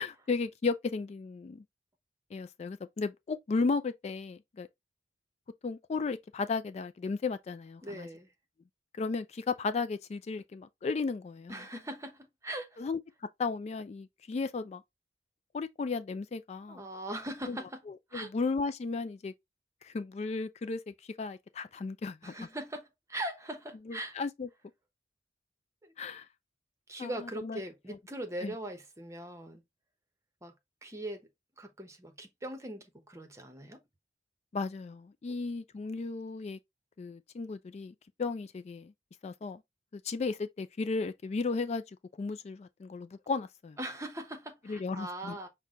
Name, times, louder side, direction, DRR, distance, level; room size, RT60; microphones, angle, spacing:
voice 1, 0.0-1.6 2.3-4.7 5.6-8.1 9.0-11.6 12.8-13.0 13.4-14.8 15.5-16.8 17.5-17.6 18.1-19.3 19.8-22.3 23.9-24.5 26.0-26.3 27.0-27.1 27.4-27.6 28.4-28.5 34.5-36.6 37.0-38.9 39.2-39.6 39.9-41.8 42.2-43.8 44.7-45.4, left 4 dB, 35° left, 0.3 m, -34 dB
voice 2, 7.8-8.3 11.5-12.8 16.7-17.8 18.1-18.3 22.2-24.1 25.8-25.9 26.9-29.6 30.4-30.5 30.8-31.3 31.6-33.8 43.8-45.5, right 1 dB, 15° right, 0.9 m, -40 dB
5.9 x 2.2 x 3.6 m
head